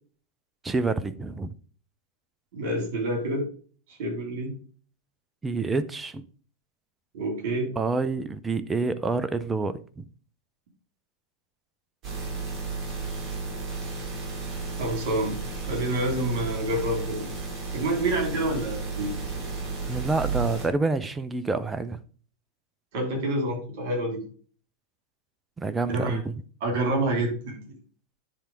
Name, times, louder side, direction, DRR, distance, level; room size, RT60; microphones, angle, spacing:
voice 1, 0.6-1.5 5.4-6.2 7.8-10.0 19.9-22.0 25.6-26.3, right 3 dB, 15° right, 0.6 m, -28 dB
voice 2, 2.5-3.5 3.9-4.5 7.1-7.7 14.8-15.4 15.7-17.3 17.7-19.1 22.9-24.2 25.9-26.2 26.6-27.8, right 1 dB, 50° right, 2.9 m, -28 dB
sound 1, 12.0-20.7, right 4 dB, 30° right, 3.1 m, -33 dB
10.0 x 3.4 x 4.7 m
figure-of-eight pair, 90°, 0 cm